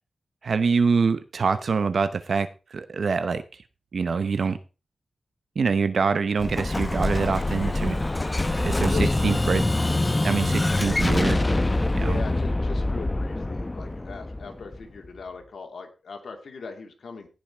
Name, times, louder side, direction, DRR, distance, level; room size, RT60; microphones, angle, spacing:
voice 1, 0.4-3.4 3.9-4.6 5.6-8.0 8.5-8.9 9.2-9.6 10.2-11.4 11.9-12.2, right 5 dB, 70° right, 11 dB, 0.9 m, -25 dB
Explosion, 6.4-15.1, left 2 dB, 25° left, 0.8 m, -25 dB
voice 2, 11.9-17.3, left 4 dB, 75° left, 3 dB, 2.7 m, -39 dB
17.0 x 5.9 x 4.5 m, 0.31 s
cardioid pair, 60°, 0 cm